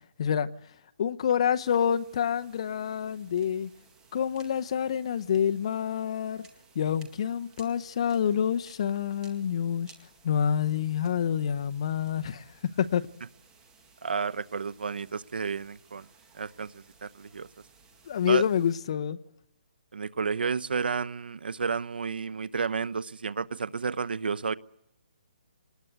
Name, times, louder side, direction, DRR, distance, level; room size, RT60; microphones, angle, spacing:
voice 1, 0.2-0.5 1.0-3.7 4.1-6.5 6.7-9.9 10.2-13.1 18.1-19.2, left 8 dB, 35° left, 0.8 m, -27 dB
sound 1, 1.6-18.8, right 5 dB, 10° right, 2.0 m, -59 dB
voice 2, 14.0-16.0 16.3-17.5 18.3-18.4 19.9-24.5, right 5 dB, 75° right, 1.0 m, -31 dB
26.0 x 20.0 x 8.1 m
hypercardioid pair, 170°, 5 cm